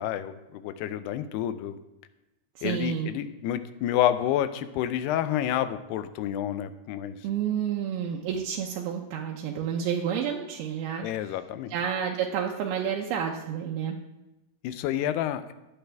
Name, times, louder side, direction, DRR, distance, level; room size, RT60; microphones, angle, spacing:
voice 1, 0.0-1.8 2.6-7.2 11.0-11.8 14.6-15.5, left 11 dB, 90° left, 11 dB, 2.8 m, -29 dB
voice 2, 2.6-3.1 7.2-11.1 11.7-14.0, right 8 dB, 80° right, 0 dB, 2.8 m, -30 dB
15.5 x 10.0 x 3.5 m, 0.96 s
omnidirectional pair, 4.6 m